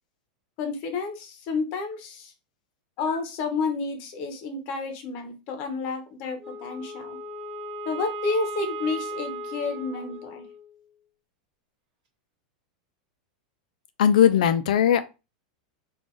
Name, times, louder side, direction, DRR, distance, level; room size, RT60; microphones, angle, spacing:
voice 1, 0.6-2.3 3.0-7.2 7.8-10.5, left 4 dB, 35° left, 0.9 m, -30 dB
Wind instrument woodwind instrument, 6.4-10.8, right 1 dB, 50° right, 1.6 m, -36 dB
voice 2, 14.0-15.0, left 9 dB, 75° left, 0.5 m, -19 dB
3.8 x 2.5 x 3.7 m
supercardioid pair, 175°, 4 cm